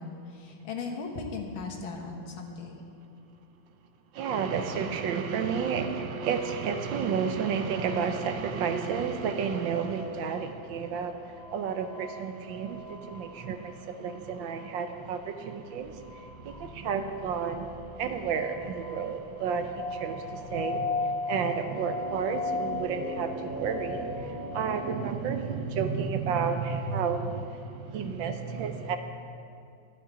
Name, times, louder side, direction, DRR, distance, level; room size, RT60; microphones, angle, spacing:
voice 1, 0.0-2.8, left 4 dB, 75° left, 1 dB, 2.1 m, -37 dB
voice 2, 4.1-11.1 11.5-16.0 16.4-29.0, right 6 dB, 70° right, 7 dB, 1.3 m, -31 dB
sound 1, 5.5-25.0, left 3 dB, 25° left, 1.2 m, -39 dB
12.0 x 10.5 x 5.1 m, 2.5 s
omnidirectional pair, 2.3 m